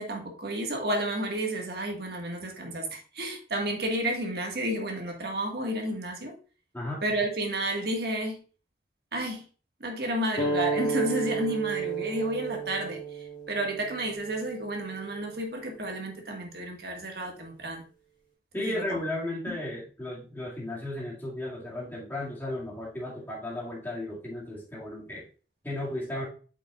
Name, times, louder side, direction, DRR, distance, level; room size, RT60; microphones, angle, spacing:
voice 1, 0.0-6.3 7.0-8.4 9.1-9.4 9.8-17.9 18.6-19.0 19.5-19.6, right 1 dB, 60° right, 2 dB, 1.6 m, -31 dB
voice 2, 6.7-7.0 18.5-25.3 25.6-26.2, left 1 dB, 10° left, -5 dB, 2.0 m, -35 dB
sound 1, 10.4-15.5, right 4 dB, 30° left, 2.7 m, -32 dB
8.3 x 5.5 x 2.4 m, 0.36 s
head